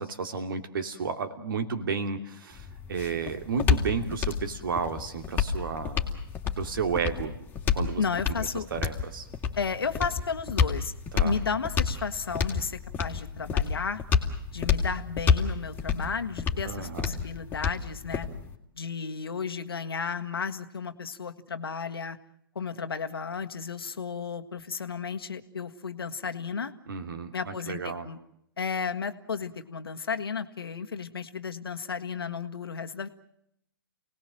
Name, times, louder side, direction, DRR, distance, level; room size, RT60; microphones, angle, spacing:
voice 1, 0.0-6.0 6.6-7.3 7.7-8.0 8.5-9.3 11.1-11.4 16.6-17.1 26.9-28.1, right 5 dB, 65° right, 8 dB, 2.8 m, -32 dB
sound 1, 2.5-18.6, left 6 dB, 15° left, 2.8 m, -29 dB
voice 2, 8.0-8.7 9.6-10.9 11.2-14.0 14.5-18.3 18.7-22.2 22.5-26.7 27.3-28.2 28.6-33.1, left 5 dB, 75° left, 8 dB, 1.7 m, -33 dB
28.5 x 19.0 x 7.6 m, 0.76 s
figure-of-eight pair, 120°, 12 cm